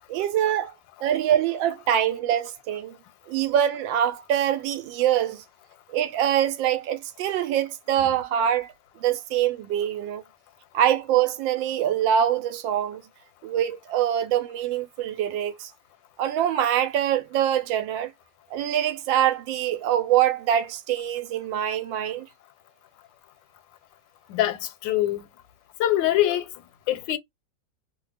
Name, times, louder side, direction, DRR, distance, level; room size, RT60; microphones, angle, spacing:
voice 1, 0.1-0.7 1.0-3.0 3.3-5.4 5.9-8.7 9.0-10.2 10.7-13.0 13.4-15.7 16.2-18.1 18.5-22.3, right 10 dB, 85° right, 1.3 m, -24 dB
voice 2, 24.3-25.2 25.8-26.5 26.9-27.2, left 13 dB, 85° left, 1.3 m, -23 dB
3.0 x 2.2 x 3.2 m
omnidirectional pair, 2.0 m